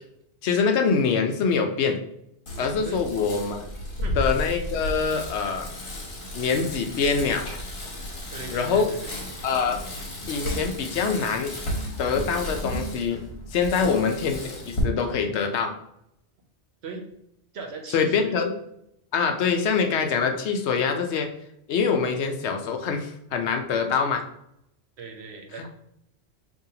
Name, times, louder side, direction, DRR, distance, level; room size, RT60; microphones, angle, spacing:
voice 1, 0.4-2.0 2.6-3.7 4.2-5.7 6.3-7.5 8.5-8.9 9.4-9.8 10.3-11.5 12.0-13.2 13.5-15.7 17.9-18.5 19.1-21.3 21.7-24.2, left 5 dB, 75° left, 5 dB, 0.9 m, -24 dB
Bicycle, 2.5-14.8, left 1 dB, 60° left, 1.3 m, -34 dB
voice 2, 8.3-9.2 13.7-14.1 16.8-17.0 17.5-18.3 19.6-19.7 25.0-25.7, right 4 dB, 70° right, 3 dB, 1.0 m, -39 dB
5.2 x 2.7 x 2.8 m, 0.78 s
omnidirectional pair, 1.2 m